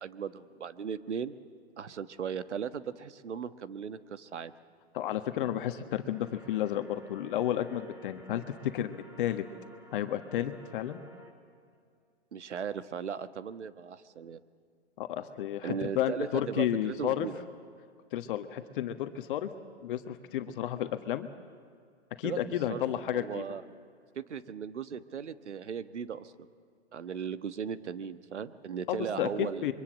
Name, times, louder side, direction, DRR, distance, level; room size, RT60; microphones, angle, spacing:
voice 1, 0.0-1.4 1.8-4.5 12.3-14.4 15.6-17.4 22.2-22.4 22.7-22.8 23.1-23.6 24.1-26.3 26.9-29.7, right 7 dB, 85° right, 12 dB, 1.4 m, -37 dB
voice 2, 4.9-9.4 9.9-11.0 15.0-17.3 18.1-19.5 19.8-21.3 22.2-23.4 28.9-29.7, left 11 dB, 50° left, 9 dB, 1.5 m, -32 dB
sound 1, 6.0-11.3, equal, 10° right, 2.9 m, -55 dB
26.0 x 23.5 x 7.5 m, 2.2 s
hypercardioid pair, 140°, 34 cm